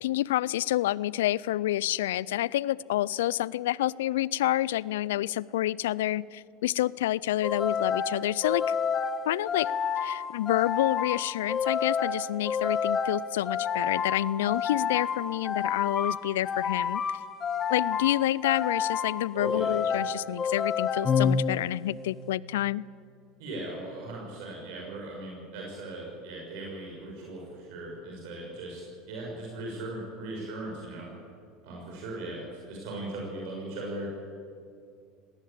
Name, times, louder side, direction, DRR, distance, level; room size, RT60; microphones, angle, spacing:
voice 1, 0.0-8.8 9.3-9.7 10.0-17.0 17.7-22.8, left 14 dB, 80° left, 23 dB, 0.4 m, -28 dB
sound 1, 7.4-22.0, left 6 dB, 35° left, 1.4 m, -29 dB
voice 2, 19.3-19.8 23.4-31.1 31.6-34.1, right 2 dB, 65° right, -2 dB, 6.0 m, -38 dB
19.5 x 18.0 x 8.7 m, 2.4 s
hypercardioid pair, 80°, 0 cm